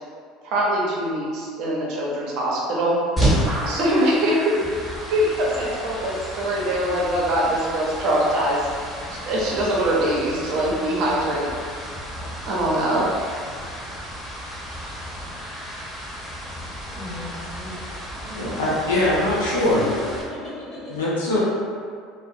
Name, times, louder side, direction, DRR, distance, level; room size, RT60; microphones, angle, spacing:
voice 1, 0.4-3.0 3.7-4.5 5.1-9.0 9.2-11.8 12.5-13.1, right 1 dB, 60° right, -4 dB, 0.6 m, -23 dB
sound 1, 3.2-20.2, right 1 dB, 10° left, 0.9 m, -31 dB
voice 2, 16.9-17.9 18.2-18.6 19.8-19.9 20.2-21.0, left 1 dB, 35° left, -8 dB, 1.2 m, -37 dB
voice 3, 18.3-19.8 20.9-21.4, left 1 dB, 85° left, -7 dB, 0.7 m, -22 dB
2.3 x 2.0 x 2.7 m, 2.1 s
hypercardioid pair, 75°, 0 cm